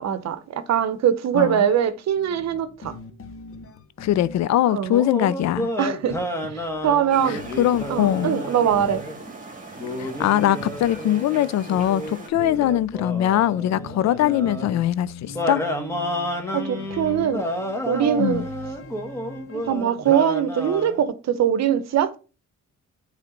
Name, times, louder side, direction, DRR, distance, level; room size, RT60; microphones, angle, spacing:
voice 1, 0.0-2.9 4.7-4.9 5.8-6.2 6.5-7.4 7.9-9.0 16.5-17.4 17.9-18.4 19.5-22.2, right 9 dB, 60° right, 0.7 m, -22 dB
voice 2, 1.3-1.7 4.0-5.7 7.3-8.4 10.0-15.6 18.2-18.5, left 12 dB, 65° left, 0.4 m, -22 dB
sound 1, 2.2-4.5 5.1-5.2 5.4-5.8 6.1-8.4 8.7-9.3 10.0-11.2 11.7-19.7, left 3 dB, 45° left, 0.9 m, -42 dB
sound 2, 4.9-9.2 9.8-14.7 15.3-21.0, left 1 dB, 10° left, 1.2 m, -31 dB
sound 3, 7.1-12.3, right 3 dB, 25° right, 1.7 m, -40 dB
8.5 x 3.2 x 3.8 m
cardioid pair, 90°, 30 cm